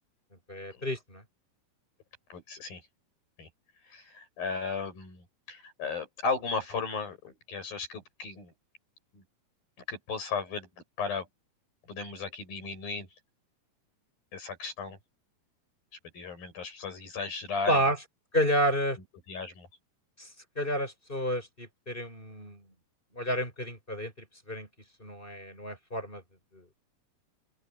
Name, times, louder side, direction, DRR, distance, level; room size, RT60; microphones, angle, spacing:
voice 1, 0.5-1.2 17.7-18.0 18.3-19.0 20.2-20.3 20.6-22.6 23.1-24.7 25.0-26.2 26.5-26.6, equal, 15° left, 6.5 m, -30 dB
voice 2, 2.3-2.8 3.4-3.5 3.8-8.5 9.1-9.2 9.9-10.7 11.0-11.3 11.9-13.1 14.3-15.0 16.1-17.8 19.3-19.7, left 4 dB, 70° left, 9.8 m, -35 dB
open air
omnidirectional pair, 4.3 m